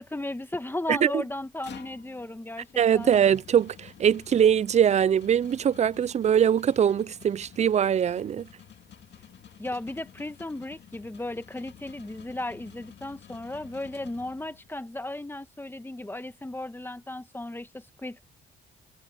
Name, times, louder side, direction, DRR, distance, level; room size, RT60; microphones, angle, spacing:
voice 1, 0.0-2.7 2.9-3.1 9.6-18.2, left 1 dB, 10° left, 1.6 m, -35 dB
voice 2, 0.9-1.2 2.8-8.5, right 8 dB, 35° right, 0.4 m, -22 dB
sound 1, 1.3-14.8, left 9 dB, 60° left, 2.2 m, -51 dB
cardioid pair, 90°, 20 cm